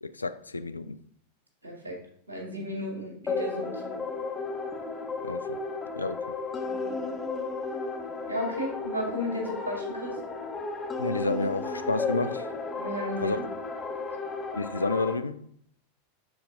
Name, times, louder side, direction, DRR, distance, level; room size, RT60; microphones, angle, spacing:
voice 1, 0.0-1.0 5.2-5.6 6.0-6.3 11.0-12.5 13.2-13.4 14.5-15.5, left 3 dB, 80° left, 0.4 m, -30 dB
voice 2, 1.6-2.0 2.3-4.0 6.7-7.0 8.3-10.1 12.8-13.4, left 1 dB, 80° right, 2.3 m, -34 dB
sound 1, 3.3-15.2, left 3 dB, 20° left, 1.4 m, -34 dB
12.5 x 4.5 x 2.5 m
figure-of-eight pair, 85°, 0 cm